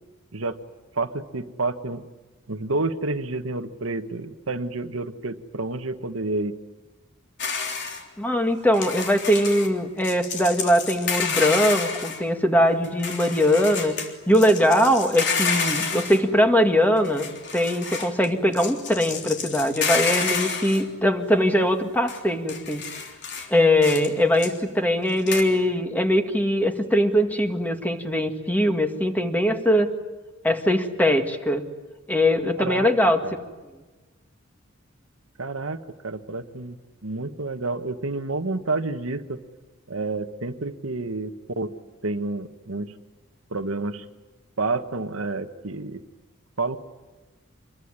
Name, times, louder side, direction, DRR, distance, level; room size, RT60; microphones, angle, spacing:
voice 1, 0.9-2.0 2.5-6.5 32.6-32.9 33.2-33.3 35.4-35.8 36.0-36.8 37.0-39.4 39.9-41.7 42.0-42.9 43.5-44.0 44.6-46.0 46.6-46.8, right 3 dB, 80° right, 8 dB, 1.4 m, -29 dB
sound 1, 7.4-8.0 8.7-9.7 10.0-12.2 12.8-14.1 14.3-16.2 17.0-18.2 18.5-20.8 22.1-22.2 22.5-23.5 23.8-24.1 24.4-24.6 25.3-25.4, left 5 dB, 60° left, 3.5 m, -29 dB
voice 2, 8.2-13.9 14.3-17.3 17.5-22.8 23.5-30.0 30.4-31.7 32.1-33.2, equal, 10° left, 5 dB, 1.9 m, -21 dB
26.5 x 22.0 x 9.8 m, 1.2 s
head